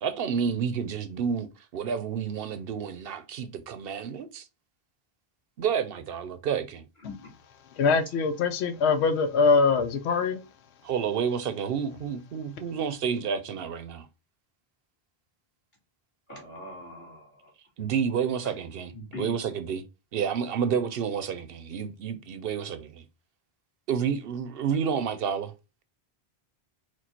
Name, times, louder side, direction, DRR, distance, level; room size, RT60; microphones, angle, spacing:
voice 1, 0.0-1.5 1.7-4.4 5.6-6.8 10.8-14.1 17.8-18.9 19.2-19.8 20.1-23.0 23.9-25.5, right 7 dB, 65° right, 0.8 m, -30 dB
voice 2, 7.8-10.4, left 4 dB, 85° left, 0.9 m, -23 dB
voice 3, 16.3-17.5 18.4-18.5 18.9-19.4, left 1 dB, 45° left, 2.1 m, -41 dB
4.5 x 2.3 x 4.2 m
omnidirectional pair, 1.1 m